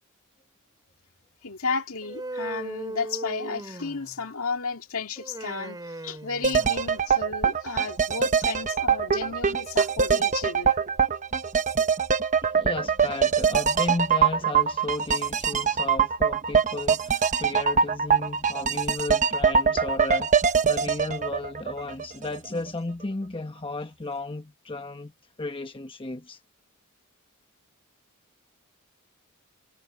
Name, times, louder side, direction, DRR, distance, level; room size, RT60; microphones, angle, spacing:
voice 1, 1.4-10.8, left 4 dB, 65° left, 2.0 m, -33 dB
Human voice, 2.0-4.3 5.2-7.0, right 1 dB, 20° right, 2.4 m, -37 dB
sound 1, 6.4-22.4 22.7-22.8, right 6 dB, 35° right, 0.9 m, -23 dB
voice 2, 12.4-25.1 25.4-26.4, left 2 dB, 25° left, 1.1 m, -34 dB
head